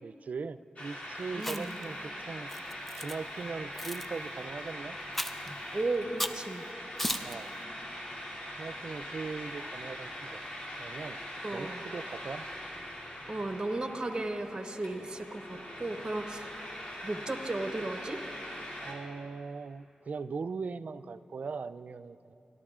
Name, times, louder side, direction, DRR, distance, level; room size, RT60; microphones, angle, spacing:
voice 1, 0.0-2.5 3.0-5.0 7.2-7.5 8.6-10.4 10.8-11.2 11.5-12.5 16.4-16.5 18.8-22.3, right 4 dB, 65° right, 12 dB, 0.3 m, -40 dB
sound 1, 0.8-18.9, equal, 45° left, 2.7 m, -42 dB
voice 2, 1.3-1.8 5.5-6.6 11.4-11.8 13.3-16.5 17.0-18.2, right 2 dB, 30° right, 6 dB, 0.9 m, -35 dB
Chewing mastication, 1.4-1.8 2.5-3.1 3.8-4.1 5.1-5.5 6.2-6.4 7.0-7.3, equal, 5° left, 0.6 m, -34 dB
29.0 x 12.0 x 2.4 m, 2.9 s
cardioid pair, 50°, 3 cm